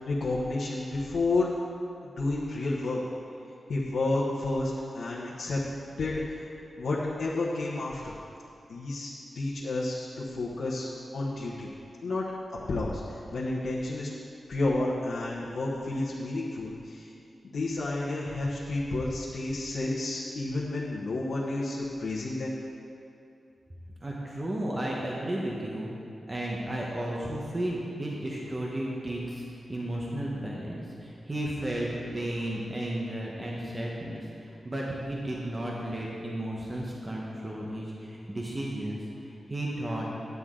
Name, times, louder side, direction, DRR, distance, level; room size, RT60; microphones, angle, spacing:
voice 1, 0.1-1.5 2.2-3.0 3.7-5.6 6.0-6.4 6.8-8.1 8.7-11.7 12.0-12.2 12.7-14.1 14.5-17.1 17.4-22.5, left 2 dB, 80° left, -7 dB, 1.1 m, -30 dB
voice 2, 24.0-25.9 26.3-39.0 39.2-40.1, right 1 dB, 20° right, -3 dB, 1.0 m, -33 dB
10.0 x 9.4 x 3.7 m, 2.6 s
wide cardioid pair, 165°, 0 cm